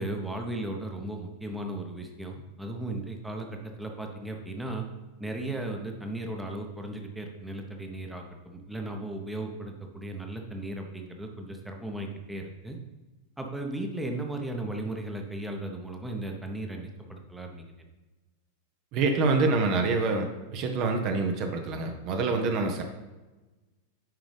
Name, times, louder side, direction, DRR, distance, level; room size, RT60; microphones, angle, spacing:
voice 1, 0.0-4.9 5.2-12.8 13.4-17.7, right 1 dB, 5° right, 3 dB, 0.9 m, -36 dB
voice 2, 18.9-22.8, right 3 dB, 40° right, 4 dB, 0.8 m, -26 dB
9.1 x 5.0 x 3.4 m, 1.1 s
figure-of-eight pair, 90°, 0 cm